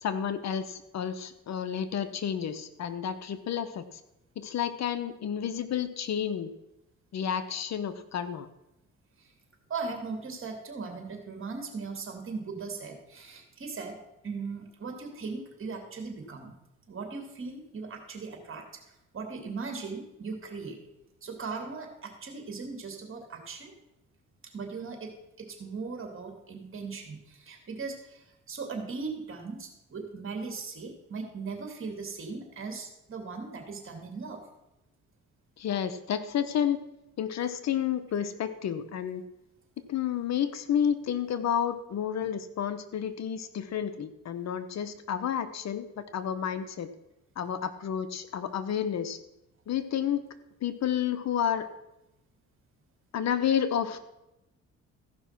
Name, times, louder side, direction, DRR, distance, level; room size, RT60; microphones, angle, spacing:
voice 1, 0.0-3.8 4.4-6.5 7.1-8.5 35.6-36.8 37.2-39.2 39.9-46.9 47.4-49.2 49.7-50.2 50.6-51.7 53.1-54.0, left 9 dB, 60° left, 11 dB, 0.9 m, -30 dB
voice 2, 9.7-14.0 14.2-16.5 16.9-18.6 19.1-20.8 21.2-23.7 24.5-34.4, right 4 dB, 45° right, 4 dB, 2.8 m, -38 dB
14.5 x 5.6 x 5.9 m, 0.90 s
cardioid pair, 90°, 30 cm